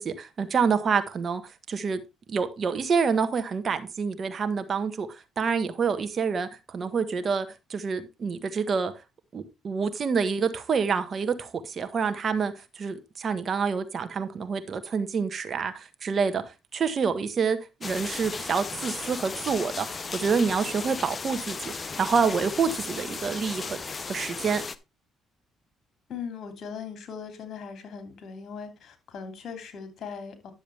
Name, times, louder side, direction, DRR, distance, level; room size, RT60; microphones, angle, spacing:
voice 1, 0.0-1.4 1.7-2.0 2.3-8.9 9.3-16.4 16.7-19.9 20.1-23.8 24.0-24.6, right 5 dB, 45° right, 1.4 m, -27 dB
sound 1, 17.8-24.7, left 4 dB, 35° left, 0.8 m, -35 dB
voice 2, 26.1-30.5, left 6 dB, 60° left, 2.7 m, -39 dB
10.5 x 7.2 x 3.4 m
supercardioid pair, 75°, 0 cm